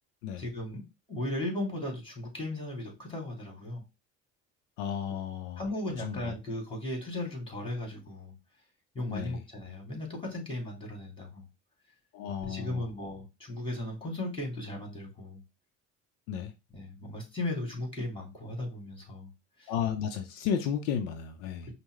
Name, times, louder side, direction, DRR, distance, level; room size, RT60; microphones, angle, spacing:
voice 1, 0.4-0.8 1.1-3.8 5.6-8.3 8.9-11.4 12.4-15.4 16.7-19.3 19.6-19.7, left 1 dB, 15° left, 2.5 m, -36 dB
voice 2, 4.8-5.6 6.0-6.3 9.1-9.4 12.1-12.9 16.3-16.5 19.7-21.7, left 8 dB, 80° left, 0.7 m, -33 dB
5.3 x 2.2 x 3.2 m
hypercardioid pair, 70°, 36 cm